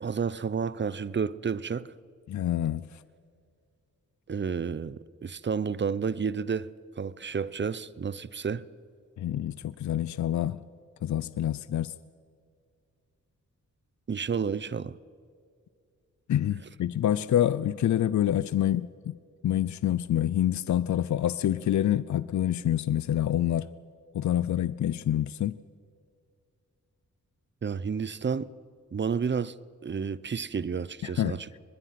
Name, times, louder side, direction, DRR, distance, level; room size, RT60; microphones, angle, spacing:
voice 1, 0.0-1.9 4.3-8.6 14.1-14.9 27.6-28.5 28.9-29.5 29.8-31.6, right 6 dB, 40° right, 0.8 m, -31 dB
voice 2, 2.3-2.9 9.2-10.6 11.0-11.9 16.3-19.1 19.4-23.7 24.1-25.5 31.0-31.4, left 11 dB, 70° left, 0.6 m, -27 dB
24.0 x 21.0 x 5.9 m
cardioid pair, 75°, 30 cm